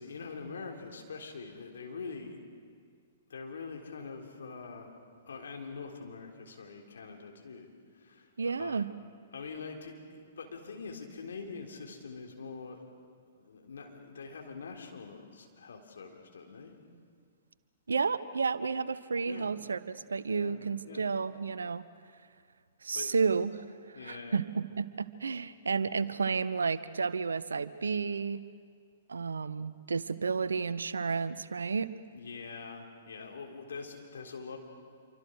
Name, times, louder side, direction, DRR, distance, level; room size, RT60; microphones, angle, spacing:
voice 1, 0.0-2.5 3.3-5.0 5.3-8.9 9.3-12.9 13.3-16.7 19.2-19.5 20.3-21.0 22.9-23.2 23.9-24.4 32.1-34.6, left 4 dB, 70° left, 2 dB, 3.7 m, -44 dB
voice 2, 8.4-8.9 17.9-21.9 22.8-23.5 24.0-28.4 29.1-31.9, right 5 dB, 75° right, 15 dB, 0.9 m, -31 dB
27.0 x 25.0 x 6.4 m, 2.1 s
figure-of-eight pair, 115°, 0 cm